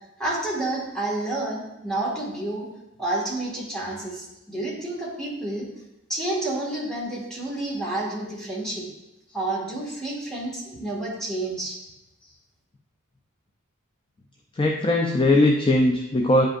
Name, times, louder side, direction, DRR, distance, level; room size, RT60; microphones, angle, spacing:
voice 1, 0.2-2.7 3.0-5.7 6.1-8.8 9.3-11.8, right 2 dB, 5° left, -5 dB, 1.8 m, -29 dB
voice 2, 14.6-16.5, left 1 dB, 25° left, 1 dB, 0.4 m, -19 dB
10.5 x 5.1 x 2.5 m, 0.93 s
head